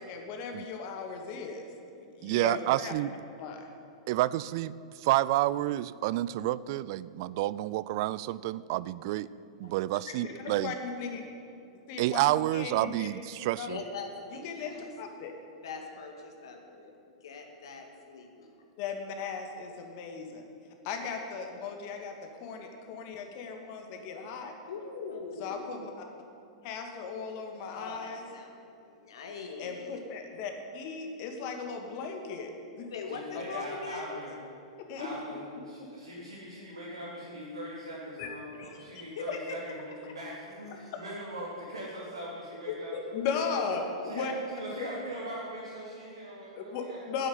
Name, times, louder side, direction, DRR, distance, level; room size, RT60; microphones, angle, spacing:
voice 1, 0.1-1.6 2.0-2.9 3.4-3.6 10.2-11.2 11.9-12.2 12.5-13.1 13.6-13.7 14.3-15.3 18.8-20.4 20.8-22.2 22.4-24.5 25.4-26.1 26.6-28.3 29.6-32.5 32.8-32.9 33.3-33.5 34.8-35.1 38.2-38.3 43.1-44.3 44.8-44.9 46.6-47.3, left 5 dB, 50° left, 4 dB, 2.0 m, -37 dB
voice 2, 2.2-3.1 4.1-9.3 9.6-10.7 12.0-13.8, right 15 dB, 55° right, 19 dB, 0.4 m, -29 dB
voice 3, 9.6-10.1 13.7-14.9 15.6-18.5 24.7-25.9 27.7-30.0 32.9-34.2 38.5-38.8 39.2-39.6 40.1-40.2 40.6-40.9 42.7-43.3, left 5 dB, 70° left, 3 dB, 1.9 m, -41 dB
voice 4, 33.1-34.4 35.0-42.9 44.0-47.1, right 1 dB, 85° right, -7 dB, 3.1 m, -41 dB
10.0 x 8.2 x 9.5 m, 2.6 s
hypercardioid pair, 105°, 3 cm